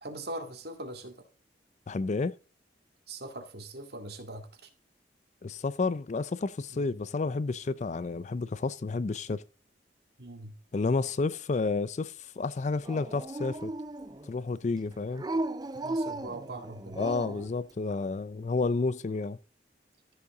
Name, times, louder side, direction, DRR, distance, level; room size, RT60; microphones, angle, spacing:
voice 1, 0.0-1.2 3.1-4.7 6.7-6.9 10.2-10.6 15.8-17.0, right 1 dB, 60° right, 2.1 m, -41 dB
voice 2, 1.9-2.3 5.4-9.4 10.7-13.7 14.3-15.2 17.0-19.4, left 3 dB, 40° left, 0.4 m, -30 dB
Dog, 12.8-14.3 15.1-17.5, right 2 dB, 20° right, 0.5 m, -35 dB
14.5 x 5.6 x 3.8 m
head